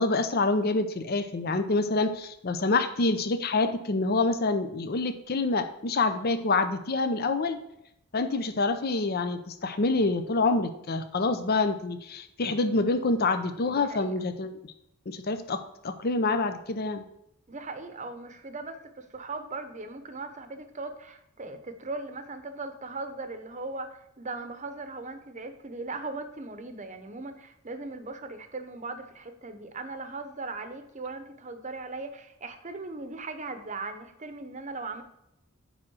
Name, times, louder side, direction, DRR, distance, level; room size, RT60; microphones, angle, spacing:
voice 1, 0.0-7.6 8.1-14.5 15.1-17.0, left 3 dB, 50° left, 9 dB, 0.6 m, -27 dB
voice 2, 13.6-14.1 17.5-35.0, right 3 dB, 35° right, 9 dB, 0.8 m, -39 dB
9.1 x 3.7 x 6.2 m, 0.79 s
head